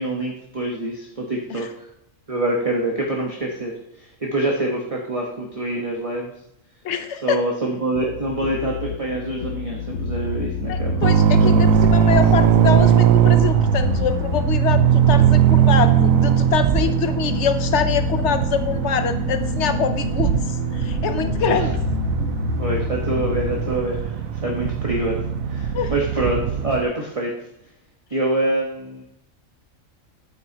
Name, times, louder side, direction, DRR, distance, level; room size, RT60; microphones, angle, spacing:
voice 1, 0.0-1.8 2.3-6.3 7.2-11.9 21.5-21.7 22.6-25.2 25.5-27.4 28.1-29.0, right 2 dB, 25° right, -1 dB, 1.2 m, -26 dB
voice 2, 6.8-7.4 10.7-20.3 20.7-21.7 25.7-25.9, left 7 dB, 60° left, 9 dB, 1.0 m, -24 dB
sound 1, 7.9-23.7, left 6 dB, 75° left, 1.2 m, -28 dB
sound 2, 11.0-26.8, right 9 dB, 85° right, 1.0 m, -19 dB
8.8 x 8.7 x 2.9 m, 0.81 s
omnidirectional pair, 1.4 m